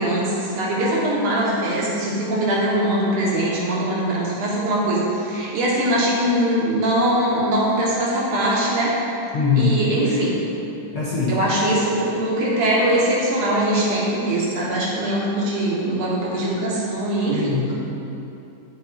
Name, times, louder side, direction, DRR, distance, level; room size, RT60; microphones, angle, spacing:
voice 1, 0.0-8.9 9.6-10.4 11.3-17.5, right 1 dB, 70° right, -6 dB, 2.7 m, -22 dB
voice 2, 9.3-9.9 10.9-11.4 17.3-17.7, left 4 dB, 60° left, -9 dB, 1.4 m, -21 dB
11.5 x 5.5 x 2.9 m, 2.8 s
omnidirectional pair, 3.6 m